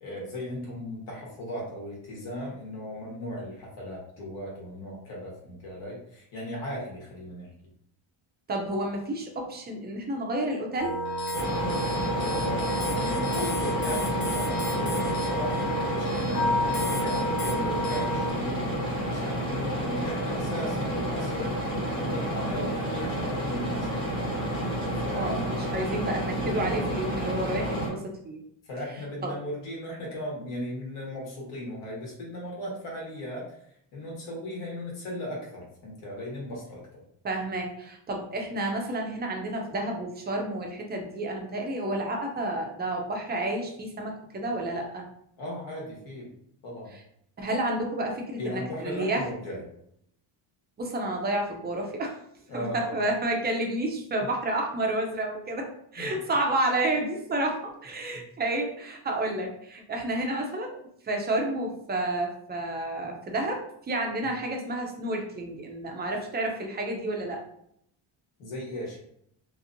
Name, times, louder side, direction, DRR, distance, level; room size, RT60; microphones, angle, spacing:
voice 1, 0.0-7.5 12.2-18.6 19.0-21.5 22.0-24.0 25.0-25.3 26.3-26.9 27.5-27.7 28.6-33.6 33.9-37.0 45.4-46.3 46.6-46.9 48.4-49.6 52.5-53.0 56.0-56.2 58.1-58.2 68.4-69.0, left 1 dB, 80° left, -3 dB, 1.3 m, -37 dB
voice 2, 8.5-10.9 25.2-28.0 28.2-28.4 29.2-29.3 37.2-45.0 47.4-49.3 50.8-52.1 52.5-55.7 55.9-60.8 61.0-63.6 63.9-67.4, right 1 dB, 20° right, 1 dB, 0.4 m, -30 dB
sound 1, 10.8-18.3, equal, 45° left, 0.6 m, -30 dB
sound 2, 11.3-27.9, equal, 10° left, 0.7 m, -30 dB
2.9 x 2.6 x 2.5 m, 0.71 s
cardioid pair, 160°, 49 cm